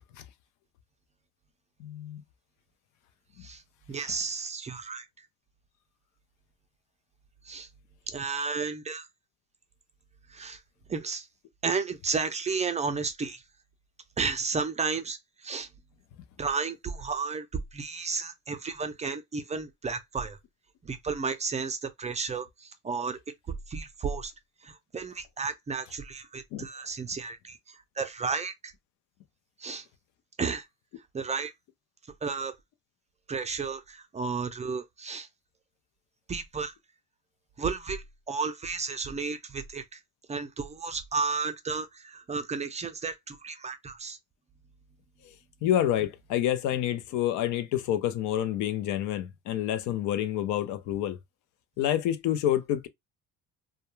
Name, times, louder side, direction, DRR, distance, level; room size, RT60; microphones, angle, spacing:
voice 1, 1.8-2.2 4.0-4.1 26.5-26.6 45.2-45.3 45.6-51.2 51.8-52.9, left 11 dB, 75° left, 0.5 m, -28 dB
voice 2, 3.9-5.1 7.5-7.7 8.1-9.1 10.3-10.6 10.9-11.3 11.6-13.4 14.2-15.7 16.4-17.5 17.7-20.4 20.8-23.2 23.7-24.3 24.6-28.7 29.6-29.8 30.4-30.7 31.1-31.5 32.2-32.5 33.3-35.3 36.3-36.7 37.6-40.0 40.3-44.2, right 5 dB, 25° right, 0.4 m, -33 dB
2.3 x 2.2 x 3.0 m
cardioid pair, 95°, 30 cm